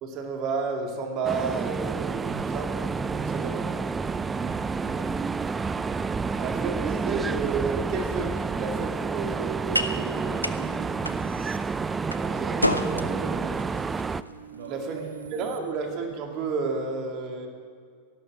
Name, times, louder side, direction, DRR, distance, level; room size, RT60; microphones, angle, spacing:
voice 1, 0.0-3.7 6.4-11.5 12.1-13.6 14.7-15.0 15.3-17.5, right 4 dB, 40° right, 3 dB, 2.5 m, -32 dB
sound 1, 1.2-14.2, right 4 dB, 15° right, 0.4 m, -29 dB
voice 2, 4.3-5.2 12.6-13.5 14.5-15.5, right 3 dB, 55° right, 1 dB, 1.6 m, -43 dB
sound 2, 8.6-16.6, left 1 dB, 90° left, 0.7 m, -34 dB
sound 3, 10.6-12.5 13.1-15.6, right 10 dB, 80° right, 0.7 m, -46 dB
15.5 x 12.0 x 7.4 m, 2.1 s
figure-of-eight pair, 90°, 0 cm